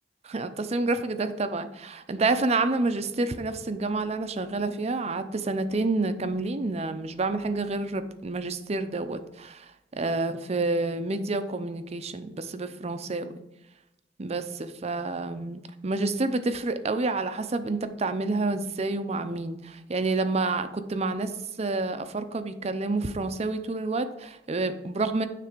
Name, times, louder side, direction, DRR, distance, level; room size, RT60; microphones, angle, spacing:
voice 1, 0.2-13.3 14.2-21.3 21.6-25.3, right 3 dB, 40° right, 10 dB, 0.5 m, -29 dB
9.7 x 3.4 x 5.1 m, 0.90 s
head